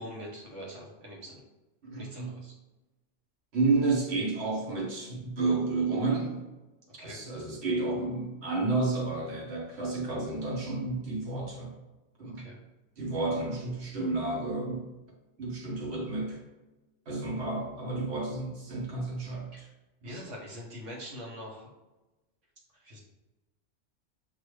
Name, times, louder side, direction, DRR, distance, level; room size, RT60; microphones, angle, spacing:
voice 1, 0.0-1.4 2.0-2.6 7.0-7.2 12.3-12.6 19.5-19.7 20.0-21.7 22.7-23.0, equal, 85° right, -3 dB, 1.5 m, -43 dB
voice 2, 1.8-2.4 3.5-6.5 7.0-11.7 12.2-12.5 13.0-14.9 15.4-16.4 17.1-19.7 20.0-20.1, right 3 dB, 65° right, -1 dB, 1.2 m, -31 dB
6.1 x 2.6 x 3.1 m, 1.1 s
omnidirectional pair, 1.2 m